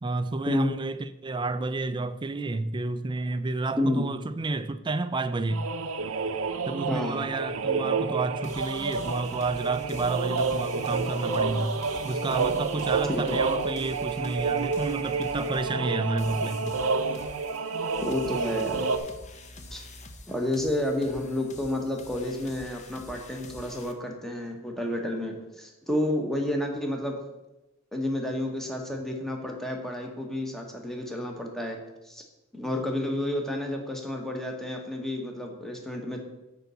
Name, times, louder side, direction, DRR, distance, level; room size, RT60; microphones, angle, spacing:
voice 1, 0.0-5.7 6.7-11.8 12.0-17.0, right 3 dB, 20° right, 0.4 m, -30 dB
voice 2, 3.8-4.1 6.9-7.3 13.1-13.4 18.0-18.8 19.7-19.8 20.3-27.2 27.9-31.8 32.0-32.2 32.5-36.2, left 1 dB, ahead, 1.2 m, -30 dB
sound 1, 5.5-19.0, right 4 dB, 70° right, 0.7 m, -29 dB
sound 2, 8.4-23.9, left 2 dB, 30° left, 0.8 m, -47 dB
9.0 x 4.0 x 6.8 m
head